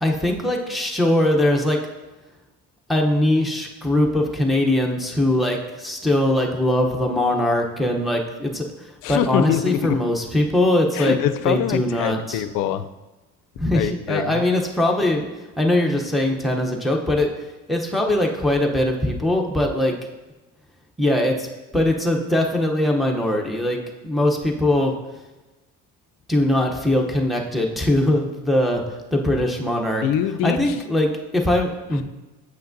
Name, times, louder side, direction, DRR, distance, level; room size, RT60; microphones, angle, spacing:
voice 1, 0.0-1.8 2.9-11.2 11.4-12.4 13.6-15.3 15.6-17.3 17.7-19.9 21.0-21.5 21.7-24.9 26.3-30.0 30.4-32.0, left 1 dB, ahead, -1 dB, 0.7 m, -21 dB
voice 2, 9.0-10.0 10.9-12.9 13.7-14.5 30.0-30.8 31.9-32.0, left 10 dB, 75° left, 12 dB, 0.5 m, -24 dB
7.7 x 5.7 x 2.6 m, 1.1 s
cardioid pair, 115°, 33 cm